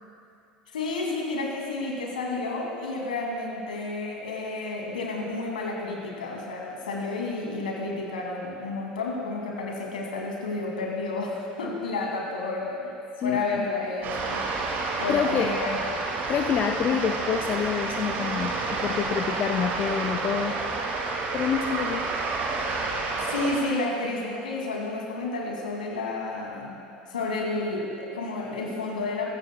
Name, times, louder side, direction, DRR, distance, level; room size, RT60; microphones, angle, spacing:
voice 1, 0.7-12.9 13.2-14.4 15.0-15.8 23.3-26.8 27.1-29.3, left 3 dB, 80° left, -1 dB, 2.3 m, -31 dB
voice 2, 13.2-13.7 15.1-15.5 16.3-20.6 21.3-22.1, left 8 dB, 40° left, 4 dB, 0.7 m, -27 dB
sound 1, 14.0-23.6, right 3 dB, 45° right, 2.1 m, -29 dB
19.5 x 15.5 x 2.2 m, 2.5 s
figure-of-eight pair, 70°, 5 cm